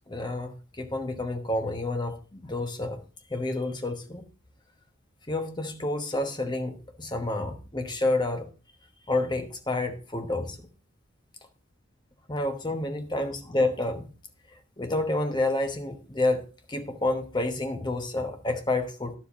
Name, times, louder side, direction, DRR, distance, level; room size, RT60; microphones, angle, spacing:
voice 1, 0.1-3.0 3.3-4.2 5.3-8.5 9.1-10.7 12.3-14.1 14.8-19.1, left 2 dB, 20° left, 1.1 m, -29 dB
10.5 x 7.3 x 4.1 m
head